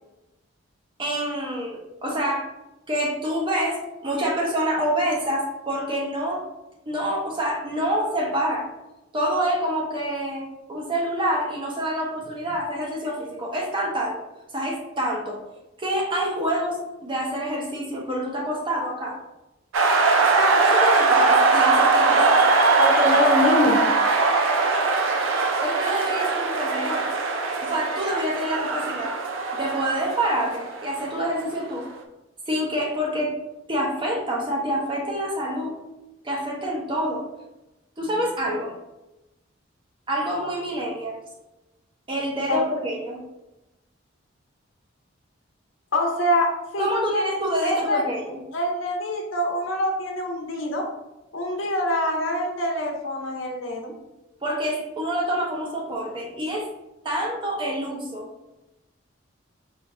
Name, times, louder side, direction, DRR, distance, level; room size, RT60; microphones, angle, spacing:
voice 1, 1.0-2.5 2.9-6.4 6.9-8.7 9.1-14.2 14.5-15.4 15.8-19.2 20.3-22.4 24.6-24.8 25.6-27.1 27.6-29.2 29.5-31.9 32.5-33.3 33.7-35.7 36.2-37.2 38.0-38.7 40.1-41.2 42.1-43.2 46.8-48.4 54.4-56.7 57.0-58.3, right 1 dB, 25° right, -2 dB, 0.8 m, -27 dB
sound 1, 19.7-31.4, right 3 dB, 85° right, 0.5 m, -21 dB
voice 2, 22.8-23.8 42.5-42.6 45.9-46.5 46.7-48.0 48.5-50.8 51.3-53.9, left 1 dB, 85° left, 0 dB, 0.9 m, -24 dB
4.4 x 2.5 x 3.5 m, 0.98 s
head